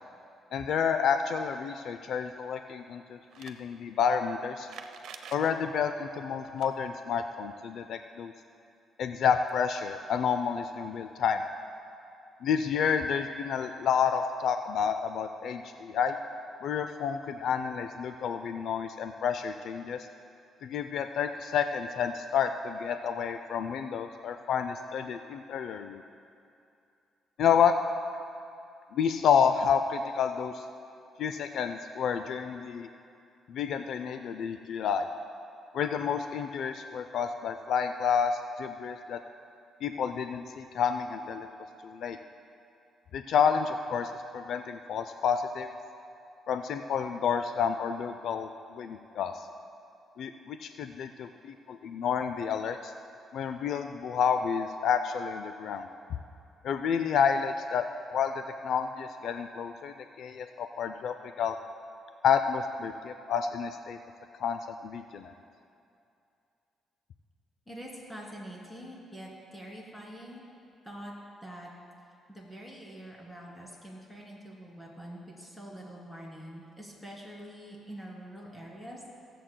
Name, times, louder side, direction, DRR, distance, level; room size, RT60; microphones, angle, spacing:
voice 1, 0.5-4.7 5.3-8.3 9.0-11.4 12.4-16.2 16.6-20.1 20.6-26.0 27.4-27.8 28.9-30.6 31.2-32.9 33.5-35.1 35.7-39.2 39.8-41.5 41.8-42.2 43.1-45.7 46.5-49.3 50.2-52.9 53.3-55.9 56.6-57.9 58.1-61.6 62.2-64.0 64.4-65.3, left 7 dB, 70° left, 8 dB, 0.3 m, -29 dB
sound 1, 3.2-3.6 4.6-5.5 6.4-6.7 9.2-9.3 9.5-9.6 10.7-10.8, right 7 dB, 75° right, 0.6 m, -47 dB
voice 2, 67.7-70.5 70.8-71.1 71.4-71.7 72.3-79.2, equal, 10° left, -3 dB, 2.7 m, -45 dB
22.0 x 7.6 x 2.2 m, 2.6 s
cardioid pair, 90°, 0 cm